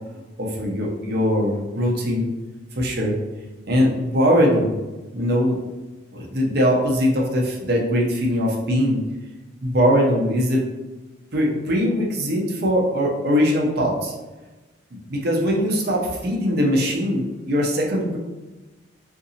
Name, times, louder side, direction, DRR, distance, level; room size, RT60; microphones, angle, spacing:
voice 1, 0.4-2.3 2.8-3.2 3.7-4.7 5.1-5.6 6.1-9.0 9.6-10.6 11.3-14.1 15.1-18.2, equal, 55° right, -1 dB, 0.7 m, -21 dB
3.7 x 2.6 x 2.7 m, 1.1 s
head